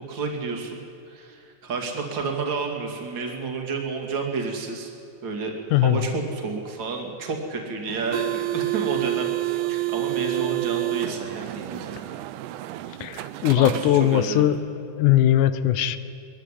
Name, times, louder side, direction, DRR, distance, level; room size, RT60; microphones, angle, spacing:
voice 1, 0.1-0.8 1.1-4.9 5.2-5.5 5.8-12.0 13.6-14.5, right 4 dB, 40° right, 1 dB, 2.8 m, -30 dB
voice 2, 5.7-6.0 13.0-14.6 14.9-16.0, left 12 dB, 85° left, 13 dB, 2.3 m, -20 dB
sound 1, 7.9-14.3, right 18 dB, 85° right, 2.2 m, -29 dB
21.0 x 15.0 x 10.0 m, 2.6 s
omnidirectional pair, 3.6 m